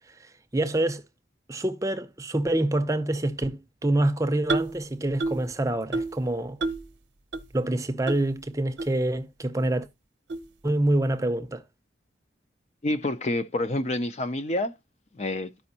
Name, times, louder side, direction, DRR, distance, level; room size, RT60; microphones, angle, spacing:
voice 1, 0.5-1.0 1.5-6.6 7.5-9.9 10.6-11.6, right 1 dB, 15° right, 0.5 m, -26 dB
sound 1, 4.5-4.8 5.2-5.5 5.9-6.2 6.6-6.9 7.3-7.4 8.1-8.2 8.8-8.9 9.6-9.7 10.3-10.5, right 3 dB, 80° right, 0.8 m, -29 dB
voice 2, 12.8-14.7 15.1-15.5, left 1 dB, 35° left, 0.4 m, -28 dB
13.0 x 5.2 x 2.7 m
head